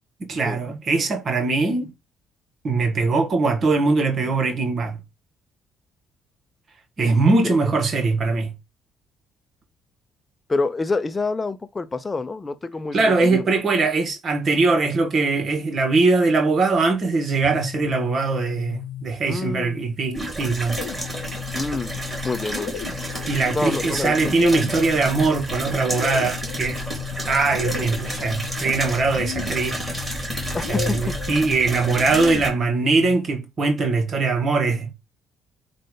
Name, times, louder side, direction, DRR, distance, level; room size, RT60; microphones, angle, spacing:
voice 1, 0.2-1.9 2.6-5.0 7.0-8.5 12.9-20.8 23.3-26.8 27.3-29.8 30.7-34.9, right 3 dB, 45° right, 1.7 m, -21 dB
voice 2, 10.5-13.4 19.3-19.9 21.5-21.9 22.2-22.9 23.5-24.3 30.5-31.1, left 3 dB, 25° left, 0.7 m, -27 dB
sound 1, 17.3-19.5 20.4-33.3, left 12 dB, 70° left, 0.7 m, -35 dB
sound 2, 20.1-32.5, right 1 dB, 15° right, 3.2 m, -31 dB
7.5 x 2.6 x 5.0 m
figure-of-eight pair, 45°, 0 cm